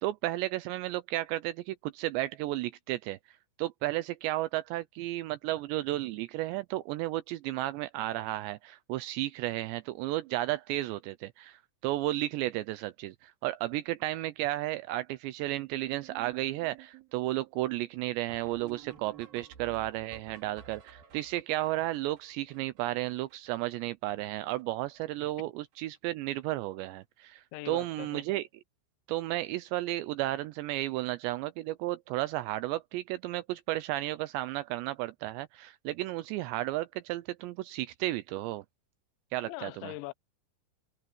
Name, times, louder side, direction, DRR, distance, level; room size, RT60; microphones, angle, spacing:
voice 1, 0.0-3.2 3.6-28.5 29.1-38.6 39.3-39.9, right 16 dB, 85° right, 2.5 m, -33 dB
sound 1, 15.6-23.8 24.1-24.2 24.4-24.6 24.9-25.4 25.7-26.0 26.8-26.9 27.3-27.4 27.7-27.8 30.1-30.2 32.5-32.6, right 9 dB, 55° right, 3.8 m, -53 dB
voice 2, 27.5-28.2 39.4-40.1, left 20 dB, 75° left, 3.0 m, -41 dB
omnidirectional pair, 5.7 m